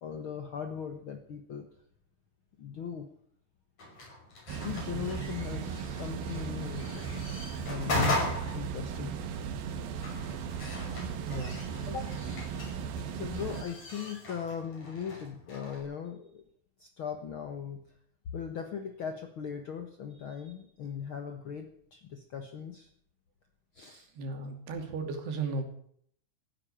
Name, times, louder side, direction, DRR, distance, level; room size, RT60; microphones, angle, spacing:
voice 1, 0.0-1.7 2.6-3.1 4.6-8.2 8.5-9.1 10.4-10.7 11.8-12.1 13.1-16.4 16.8-17.8 18.3-22.9 23.7-24.1, left 7 dB, 65° left, 6 dB, 1.3 m, -39 dB
sound 1, 3.8-15.8, left 2 dB, 45° left, 7.3 m, -38 dB
sound 2, 4.5-13.6, right 7 dB, 70° right, 3.1 m, -37 dB
voice 2, 11.2-11.6 24.2-25.6, right 3 dB, 85° right, 5 dB, 4.8 m, -35 dB
15.5 x 11.0 x 8.8 m, 0.64 s
omnidirectional pair, 4.6 m